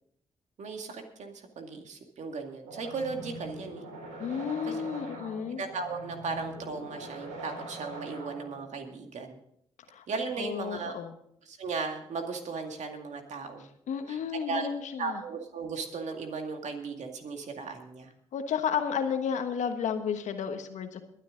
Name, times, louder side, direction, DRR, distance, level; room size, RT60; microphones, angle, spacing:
voice 1, 0.6-3.8 4.6-4.8 5.6-9.4 10.1-10.9 11.5-13.7 14.1-14.7 15.0-18.1, right 4 dB, 70° right, 4 dB, 2.2 m, -36 dB
sound 1, 2.7-8.7, right 1 dB, 85° right, 3.2 m, -43 dB
voice 2, 4.2-5.6 9.9-10.0 10.4-11.1 13.9-15.2 18.3-21.0, left 7 dB, 75° left, 8 dB, 1.3 m, -32 dB
22.5 x 9.0 x 3.9 m, 0.72 s
supercardioid pair, 45°, 13 cm